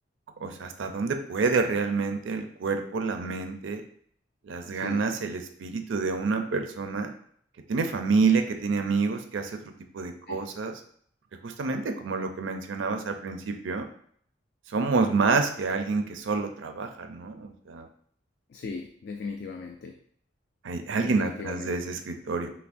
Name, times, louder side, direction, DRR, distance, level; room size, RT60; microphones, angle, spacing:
voice 1, 0.4-3.8 4.4-7.1 7.7-10.7 11.4-13.9 14.7-17.9 20.6-22.5, right 4 dB, 80° right, 6 dB, 0.5 m, -28 dB
voice 2, 18.5-20.0 21.0-21.8, left 4 dB, 55° left, 4 dB, 0.3 m, -38 dB
5.7 x 2.1 x 2.6 m, 0.62 s
head